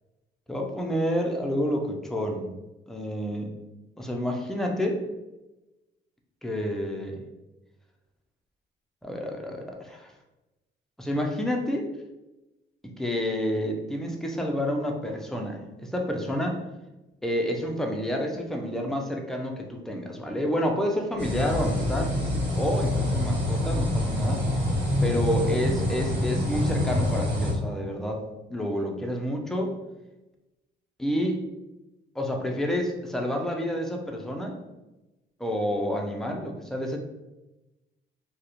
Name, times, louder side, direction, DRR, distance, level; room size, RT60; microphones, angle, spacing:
voice 1, 0.5-2.5 2.9-3.5 4.0-5.0 6.4-7.2 9.0-10.1 11.0-11.9 12.8-16.6 17.2-22.1 22.5-24.4 25.0-28.2 28.5-29.7 31.0-31.4 32.2-34.6 35.4-37.0, equal, ahead, 1 dB, 0.4 m, -29 dB
sound 1, 21.2-27.5, left 1 dB, 60° right, 1.4 m, -26 dB
2.4 x 2.1 x 2.8 m, 1.0 s
cardioid pair, 90°, 20 cm